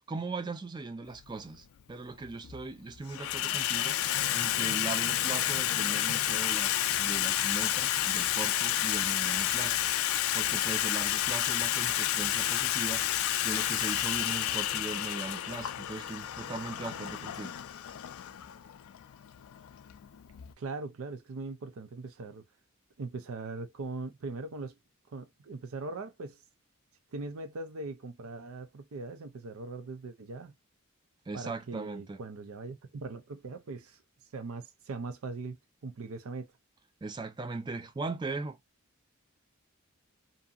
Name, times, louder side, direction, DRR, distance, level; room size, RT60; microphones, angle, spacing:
voice 1, 0.1-9.8 10.3-17.5 31.3-32.2 37.0-38.6, right 3 dB, 20° right, 0.3 m, -39 dB
Water tap faucet / Sink (filling or washing), 1.2-1.3 2.2-2.6 2.9-20.5, left 12 dB, 80° left, 0.3 m, -30 dB
voice 2, 20.6-22.4 23.0-24.8 25.1-26.4 27.1-30.6 31.3-34.0 34.3-35.6 35.8-36.5, right 3 dB, 80° right, 0.5 m, -40 dB
2.7 x 2.6 x 2.3 m
head